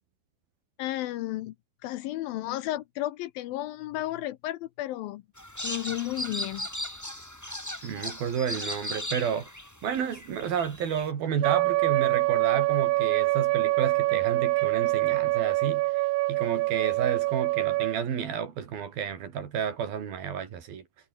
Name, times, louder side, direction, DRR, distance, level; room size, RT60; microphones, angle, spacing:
voice 1, 0.8-1.5 1.8-5.2 5.6-6.7, left 15 dB, 75° left, 2.4 m, -33 dB
sound 1, 5.4-11.1, left 1 dB, 5° left, 2.6 m, -37 dB
voice 2, 7.8-9.5 9.8-20.8, right 8 dB, 65° right, 4.7 m, -31 dB
Wind instrument woodwind instrument, 11.4-18.0, right 21 dB, 90° right, 2.0 m, -25 dB
omnidirectional pair, 4.6 m